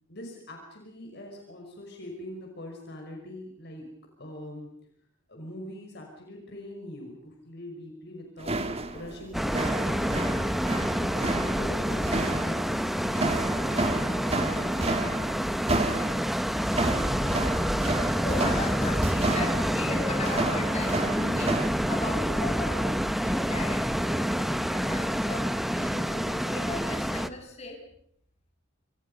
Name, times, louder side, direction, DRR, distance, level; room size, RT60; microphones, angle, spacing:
voice 1, 0.1-3.9 4.2-4.7 5.3-8.6 8.9-10.4 11.0-15.5 17.6-18.5, left 1 dB, 55° left, 1 dB, 5.5 m, -42 dB
sound 1, 8.4-21.7, right 2 dB, 30° right, 2.0 m, -31 dB
sound 2, 9.3-27.3, equal, ahead, 1.1 m, -28 dB
voice 2, 18.2-27.8, left 2 dB, 35° left, 2 dB, 7.2 m, -37 dB
29.5 x 27.0 x 5.5 m, 0.71 s
head